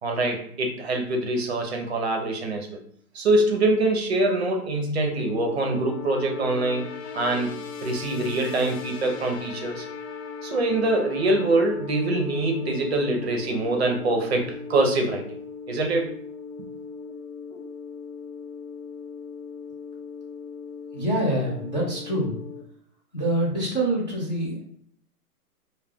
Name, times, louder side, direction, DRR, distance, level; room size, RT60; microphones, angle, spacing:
voice 1, 0.0-2.8 3.1-6.9 7.1-7.5 7.8-9.9 10.4-15.2 15.7-16.1, right 2 dB, 45° right, 3 dB, 0.5 m, -24 dB
sound 1, 5.0-22.6, left 5 dB, 90° left, 0.6 m, -38 dB
voice 2, 20.9-22.4 23.1-24.7, right 1 dB, 30° left, -6 dB, 0.4 m, -25 dB
2.2 x 2.2 x 3.3 m, 0.63 s
hypercardioid pair, 160°, 47 cm